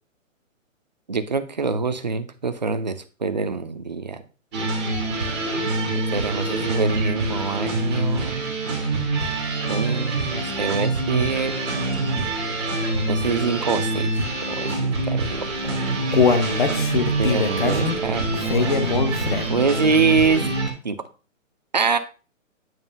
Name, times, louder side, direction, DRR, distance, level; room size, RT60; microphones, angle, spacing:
voice 1, 1.1-4.2 5.9-8.5 9.7-11.6 13.1-14.1 14.5-15.5 17.2-19.0 19.5-20.4 20.8-21.0 21.7-22.0, right 4 dB, 35° right, 8 dB, 0.5 m, -25 dB
sound 1, 4.5-20.7, right 2 dB, ahead, 0.7 m, -25 dB
Human voice, 15.5-19.7 20.1-20.2 20.7-20.8, left 5 dB, 40° left, 0.8 m, -22 dB
9.1 x 3.2 x 5.4 m, 0.36 s
hypercardioid pair, 175°, 40 cm